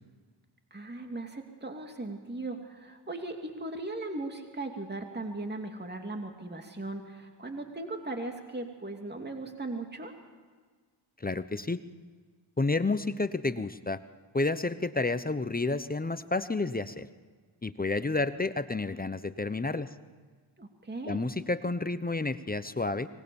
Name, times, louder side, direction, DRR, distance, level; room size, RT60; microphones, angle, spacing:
voice 1, 0.7-10.1 20.6-21.2, right 2 dB, 20° right, 4 dB, 2.8 m, -38 dB
voice 2, 11.2-11.8 12.6-14.0 14.3-17.1 17.6-19.9 21.0-23.1, left 3 dB, 20° left, 13 dB, 0.9 m, -30 dB
24.5 x 19.5 x 7.2 m, 1.5 s
cardioid pair, 60°, 45 cm